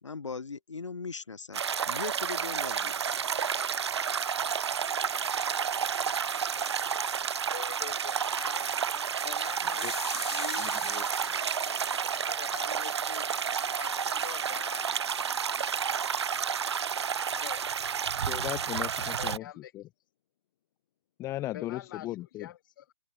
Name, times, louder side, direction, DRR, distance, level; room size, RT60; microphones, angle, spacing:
voice 1, 0.0-1.6 1.9-3.2 10.1-10.2, left 4 dB, 75° left, 4.7 m, -39 dB
sound 1, 1.5-19.4, right 7 dB, 60° right, 2.0 m, -31 dB
voice 2, 7.5-10.0 10.3-10.7 11.6-11.8 12.2-13.3 13.8-15.0 17.3-17.7 18.7-19.7 21.5-22.1 22.4-22.9, left 12 dB, 45° left, 7.2 m, -45 dB
sound 2, 9.8-15.4, left 7 dB, 60° left, 7.2 m, -45 dB
voice 3, 10.6-11.0 18.3-19.9 21.2-22.5, left 15 dB, 20° left, 1.5 m, -37 dB
figure-of-eight pair, 140°, 16 cm